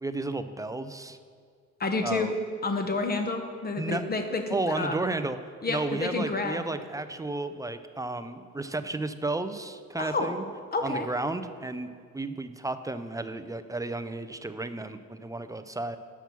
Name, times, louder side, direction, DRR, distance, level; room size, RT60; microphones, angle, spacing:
voice 1, 0.0-1.2 2.0-2.3 3.8-4.1 4.5-5.4 5.7-10.4 10.8-16.0, right 2 dB, 10° right, 10 dB, 0.4 m, -33 dB
voice 2, 1.8-2.3 2.6-5.0 5.6-6.7 10.0-10.3 10.7-11.1, left 3 dB, 30° left, 5 dB, 1.0 m, -29 dB
6.9 x 5.9 x 5.9 m, 2.2 s
cardioid pair, 90°, 30 cm